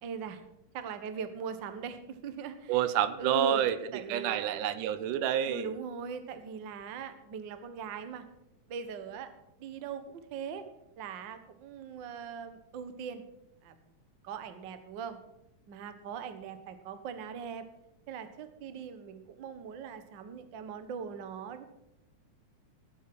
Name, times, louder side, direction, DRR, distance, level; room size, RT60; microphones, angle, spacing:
voice 1, 0.0-0.4 0.7-2.8 3.2-4.6 5.5-8.2 8.7-9.3 9.6-10.7 11.0-13.2 13.6-13.7 14.2-15.2 15.7-17.6 18.1-21.6, right 7 dB, 55° right, 10 dB, 1.3 m, -40 dB
voice 2, 2.7-5.8, right 10 dB, 90° right, 13 dB, 2.4 m, -29 dB
17.5 x 8.2 x 6.1 m, 0.84 s
omnidirectional pair, 3.6 m